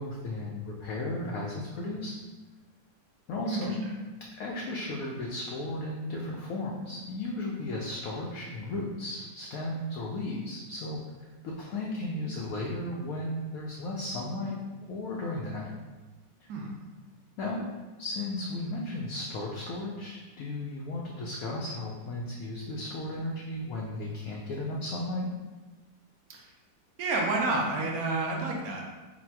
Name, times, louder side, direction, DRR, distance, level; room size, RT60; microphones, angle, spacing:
voice 1, 0.0-2.1 3.3-3.8 4.4-11.0 11.6-14.5 14.9-15.7 17.4-17.7 18.0-25.3, left 2 dB, 75° left, -2 dB, 0.8 m, -35 dB
voice 2, 3.5-3.8 16.5-16.7 26.3-26.4 27.0-28.8, right 3 dB, 65° right, -1 dB, 0.9 m, -29 dB
4.1 x 2.1 x 4.4 m, 1.2 s
omnidirectional pair, 2.0 m